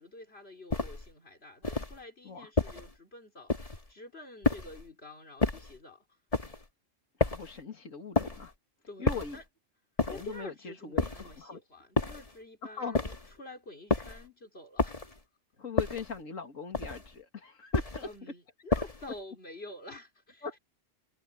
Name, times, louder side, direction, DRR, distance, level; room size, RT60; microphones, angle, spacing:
voice 1, 0.0-6.5 8.9-9.4 10.1-15.1 18.0-20.6, left 2 dB, 50° left, 3.9 m, -48 dB
sound 1, 0.7-1.1 1.6-2.0 2.6-2.9 3.5-3.9 4.4-4.9 5.4-5.8 6.3-6.7 7.2-7.6 8.2-8.5 9.1-9.4 10.0-10.4 11.0-11.4 12.0-12.3 12.9-13.4 13.9-14.3 14.8-15.2 15.8-16.2 16.7-17.1 17.7-18.1 18.7-19.1, left 3 dB, 30° left, 1.8 m, -30 dB
voice 2, 7.2-8.5 9.0-9.4 10.0-11.6 12.6-13.0 15.6-18.3 20.4-20.6, left 5 dB, 85° left, 2.6 m, -40 dB
omnidirectional pair, 1.3 m